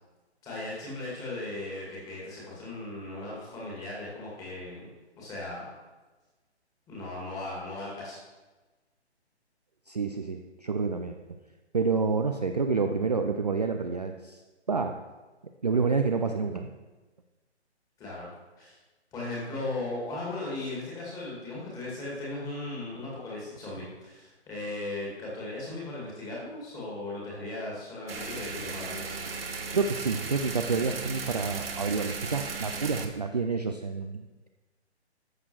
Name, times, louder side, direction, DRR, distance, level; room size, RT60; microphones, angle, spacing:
voice 1, 0.4-4.9 5.2-5.7 6.9-8.2 18.0-18.3 18.6-18.8 19.1-29.2, left 2 dB, 10° left, -5 dB, 2.0 m, -37 dB
voice 2, 9.9-11.4 11.7-14.4 14.7-15.0 15.6-16.7 29.7-34.5, right 4 dB, 40° right, 5 dB, 0.4 m, -28 dB
sound 1, 28.1-33.1, right 4 dB, 55° right, 1.1 m, -36 dB
12.5 x 6.7 x 3.0 m, 1.2 s
figure-of-eight pair, 140°, 34 cm